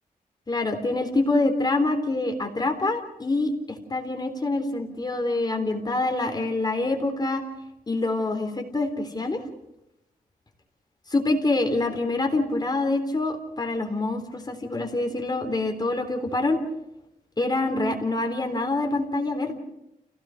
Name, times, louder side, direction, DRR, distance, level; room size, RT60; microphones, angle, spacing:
voice 1, 0.5-3.5 3.9-7.4 7.9-9.4 11.1-16.6 17.4-19.6, left 2 dB, 25° left, 5 dB, 3.7 m, -25 dB
28.5 x 17.5 x 6.5 m, 0.84 s
wide cardioid pair, 115°, 15 cm